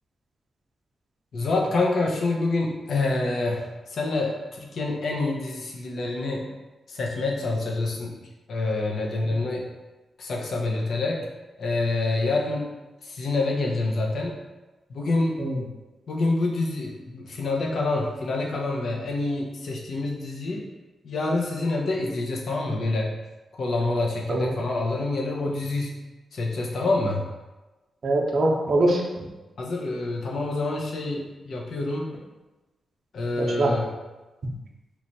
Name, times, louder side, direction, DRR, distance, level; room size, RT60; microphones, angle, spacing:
voice 1, 1.3-6.5 6.9-8.2 8.5-9.7 10.2-11.3 11.6-12.7 13.0-14.4 14.9-15.4 16.1-20.7 21.0-23.1 23.5-25.9 26.3-27.3 29.6-32.2 33.1-33.9, left 2 dB, 65° left, -1 dB, 0.7 m, -27 dB
voice 2, 28.0-29.2 33.4-33.8, right 2 dB, 55° right, -1 dB, 0.6 m, -23 dB
3.1 x 2.3 x 3.9 m, 1.1 s
wide cardioid pair, 120°, 0 cm